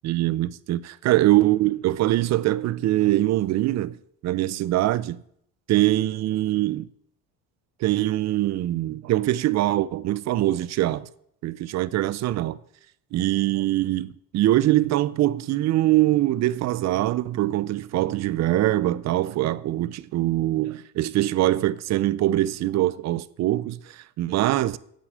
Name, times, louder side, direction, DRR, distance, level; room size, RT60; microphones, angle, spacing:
voice 1, 0.0-4.0 4.2-5.2 5.7-6.9 7.8-11.1 11.4-12.6 13.1-24.8, right 15 dB, 55° right, 0.6 m, -23 dB
8.5 x 7.7 x 8.6 m
supercardioid pair, 105°, 33 cm